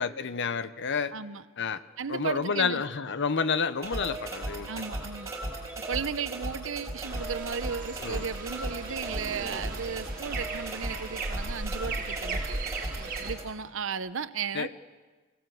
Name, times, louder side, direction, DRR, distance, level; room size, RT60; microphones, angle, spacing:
voice 1, 0.0-1.1 1.6-1.8 2.1-4.7 8.0-8.3 14.5-14.7, left 5 dB, 60° left, 13 dB, 0.8 m, -29 dB
voice 2, 1.1-1.4 2.0-2.8 4.7-5.3 5.8-12.6 13.2-14.7, right 6 dB, 70° right, 13 dB, 0.8 m, -35 dB
sound 1, 3.8-13.4, right 1 dB, 15° right, 4.7 m, -37 dB
sound 2, 7.0-13.3, right 3 dB, 45° right, 2.1 m, -37 dB
24.0 x 17.0 x 7.7 m, 1.3 s
head